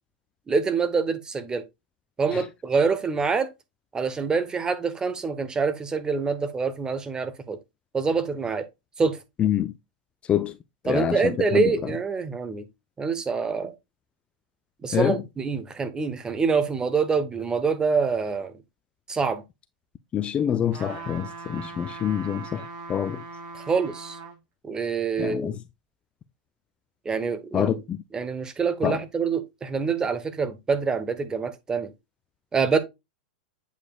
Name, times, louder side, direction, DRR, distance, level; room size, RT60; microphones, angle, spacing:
voice 1, 0.5-1.6 2.2-3.5 3.9-7.6 7.9-8.6 9.0-9.2 10.9-12.6 13.0-13.7 14.8-18.5 19.1-19.4 23.6-24.2 24.6-25.6 27.0-27.8 28.1-31.9 32.5-32.8, right 5 dB, 15° right, 1.0 m, -25 dB
voice 2, 9.4-9.7 10.3-10.5 10.8-11.6 14.9-15.2 20.1-22.6 22.9-23.2 25.2-25.6 27.5-28.0 28.8-29.0, left 9 dB, 25° left, 0.5 m, -26 dB
sound 1, 20.7-24.4 24.9-25.0, right 4 dB, 45° right, 2.3 m, -40 dB
8.2 x 5.0 x 2.4 m
hypercardioid pair, 115°, 4 cm